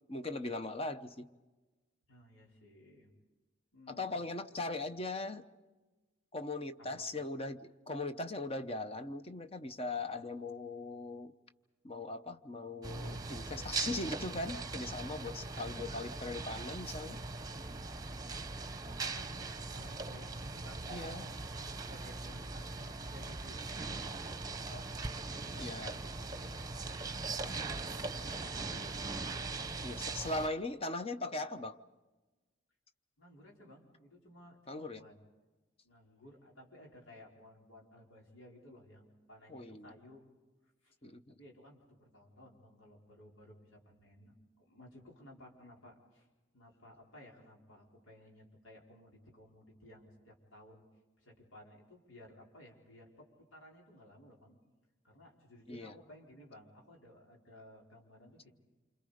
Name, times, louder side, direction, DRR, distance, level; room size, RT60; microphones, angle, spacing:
voice 1, 0.1-1.3 3.9-5.4 6.3-11.4 11.8-17.2 20.9-21.3 25.6-26.0 29.8-31.8 34.7-35.0 39.5-39.9 41.0-41.3 55.7-56.0, left 2 dB, 30° left, 10 dB, 0.8 m, -39 dB
voice 2, 2.1-3.1 3.7-4.2 6.8-7.1 15.2-15.6 18.4-21.1 21.7-26.7 27.3-29.1 33.2-35.2 35.8-40.2 40.8-40.9 41.4-46.3 46.5-50.8 51.2-54.6 55.0-58.5, left 1 dB, 85° left, -1 dB, 4.6 m, -57 dB
sound 1, 12.8-30.5, right 3 dB, 20° right, 1.0 m, -40 dB
28.0 x 26.0 x 5.1 m, 1.2 s
head